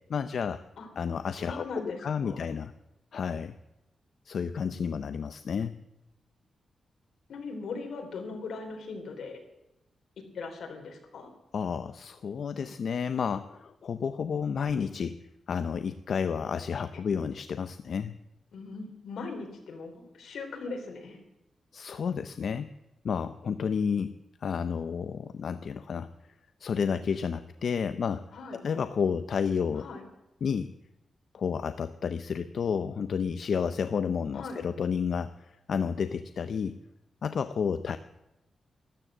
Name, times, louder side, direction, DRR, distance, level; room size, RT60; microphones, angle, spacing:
voice 1, 0.1-0.6 1.0-2.7 3.1-3.5 4.3-5.8 11.5-15.2 15.5-18.2 21.7-22.7 23.0-26.1 26.6-29.9 30.4-30.7 31.3-36.8 37.2-38.0, left 6 dB, 60° left, 10 dB, 0.5 m, -31 dB
voice 2, 1.4-2.5 7.3-9.4 10.3-11.3 18.5-21.2 28.3-28.6 29.8-30.0 34.3-34.6, left 4 dB, 85° left, 3 dB, 3.6 m, -39 dB
13.5 x 12.5 x 7.4 m, 0.94 s
wide cardioid pair, 135°, 0 cm